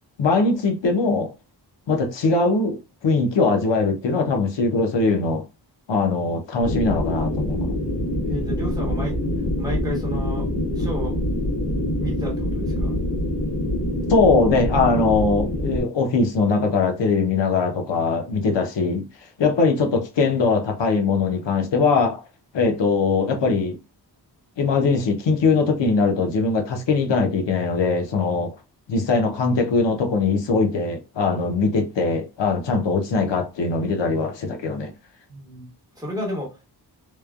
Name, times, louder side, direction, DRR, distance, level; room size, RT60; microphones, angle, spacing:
voice 1, 0.2-1.3 1.9-5.4 5.9-7.8 14.1-19.0 19.4-22.2 22.5-23.8 24.6-28.5 28.9-34.9, left 4 dB, 90° left, 0.8 m, -21 dB
sound 1, 6.6-15.8, left 1 dB, 70° left, 1.3 m, -25 dB
voice 2, 8.2-9.2 9.6-11.2 12.0-12.9 35.3-35.7 36.0-36.6, equal, 10° right, 1.0 m, -32 dB
3.2 x 2.1 x 2.3 m
wide cardioid pair, 170°, 42 cm